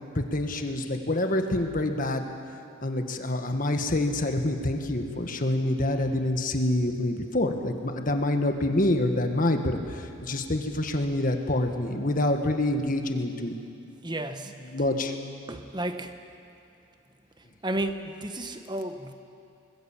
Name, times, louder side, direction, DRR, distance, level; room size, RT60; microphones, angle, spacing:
voice 1, 0.1-2.2 2.8-13.6 14.7-15.1, left 1 dB, 40° left, 5 dB, 1.6 m, -26 dB
voice 2, 14.0-14.5 15.5-16.2 17.4-19.1, right 1 dB, 20° right, 8 dB, 1.1 m, -33 dB
25.0 x 20.5 x 7.3 m, 2.5 s
head